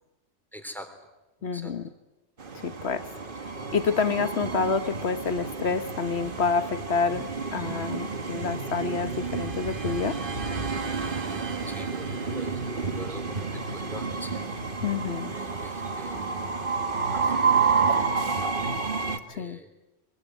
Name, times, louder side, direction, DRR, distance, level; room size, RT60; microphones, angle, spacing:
voice 1, 0.5-0.9 1.4-1.7 3.6-3.7 11.7-14.5 14.8-16.3 17.1-18.8 19.1-19.8, equal, ahead, 6 dB, 3.6 m, -45 dB
voice 2, 1.4-1.8 2.6-3.1 3.7-10.2 14.8-15.3 19.4-19.6, left 5 dB, 55° left, 11 dB, 1.4 m, -28 dB
Train, 2.4-19.2, right 5 dB, 45° right, 1.6 m, -30 dB
25.0 x 23.5 x 9.4 m, 1.0 s
omnidirectional pair, 1.3 m